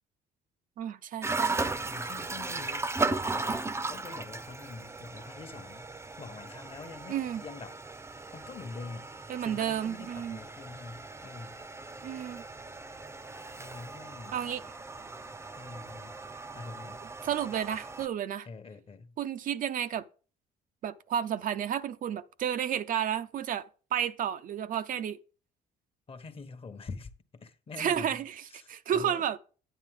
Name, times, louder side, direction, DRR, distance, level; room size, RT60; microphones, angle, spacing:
voice 1, 0.8-1.6 7.1-7.4 9.3-10.4 12.0-12.4 14.3-14.6 17.2-18.5 19.2-20.1 20.8-25.2 27.8-28.3 28.7-29.4, right 9 dB, 55° right, 0.6 m, -31 dB
sound 1, 1.2-18.1, right 3 dB, 15° right, 0.7 m, -37 dB
voice 2, 1.7-7.8 8.3-9.1 9.4-11.6 13.6-14.4 15.6-16.2 16.5-17.0 18.4-19.2 26.1-28.2 28.5-29.2, left 4 dB, 35° left, 1.1 m, -45 dB
10.5 x 9.1 x 3.7 m
cardioid pair, 110°, 17 cm